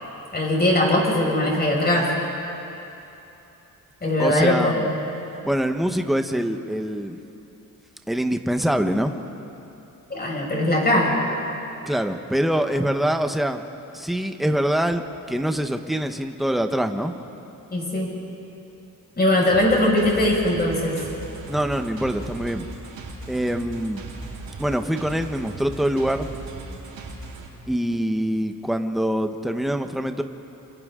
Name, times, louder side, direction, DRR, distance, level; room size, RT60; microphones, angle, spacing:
voice 1, 0.3-2.1 4.0-4.8 10.1-11.2 17.7-18.1 19.2-21.0, left 1 dB, 25° left, -2 dB, 5.8 m, -20 dB
voice 2, 4.2-4.9 5.4-7.2 8.1-9.1 11.8-13.6 13.9-15.0 15.3-17.1 21.5-22.7 23.3-24.0 24.6-26.3 27.7-30.2, equal, ahead, 6 dB, 1.0 m, -24 dB
sound 1, 19.5-27.5, right 3 dB, 75° right, 4.5 m, -38 dB
28.5 x 27.0 x 3.8 m, 2.9 s
cardioid pair, 115°, 35 cm